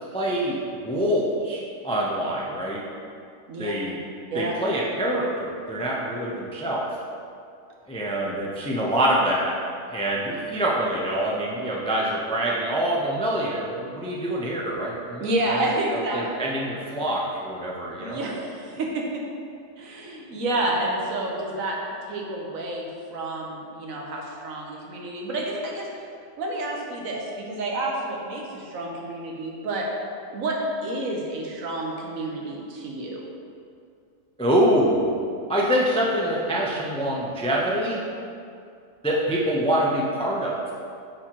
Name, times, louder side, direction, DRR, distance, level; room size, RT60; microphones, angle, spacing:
voice 1, 0.1-2.8 3.6-4.0 4.3-6.9 7.9-9.5 9.9-18.2 34.4-35.1 35.5-38.0 39.0-40.6, right 1 dB, 10° left, -4 dB, 0.3 m, -25 dB
voice 2, 15.2-16.5 18.0-19.0 19.8-21.8 22.1-25.9 26.4-29.9 30.3-30.5 30.8-33.2, right 2 dB, 75° right, -1 dB, 1.3 m, -29 dB
8.9 x 4.5 x 3.0 m, 2.4 s
omnidirectional pair, 1.4 m